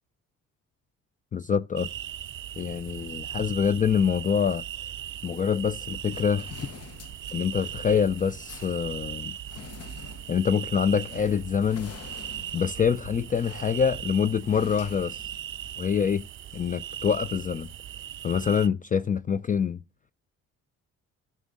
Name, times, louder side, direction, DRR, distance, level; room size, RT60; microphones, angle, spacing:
voice 1, 1.3-1.9 2.6-4.6 5.2-6.5 7.3-9.4 10.3-11.9 12.5-15.3 15.8-16.3 16.5-17.7 18.2-19.8, left 7 dB, 25° left, 0.4 m, -25 dB
sound 1, 1.8-18.7, right 11 dB, 45° right, 0.4 m, -39 dB
sound 2, 6.1-15.9, left 7 dB, 55° left, 0.9 m, -47 dB
13.5 x 6.3 x 3.7 m
cardioid pair, 90°, 30 cm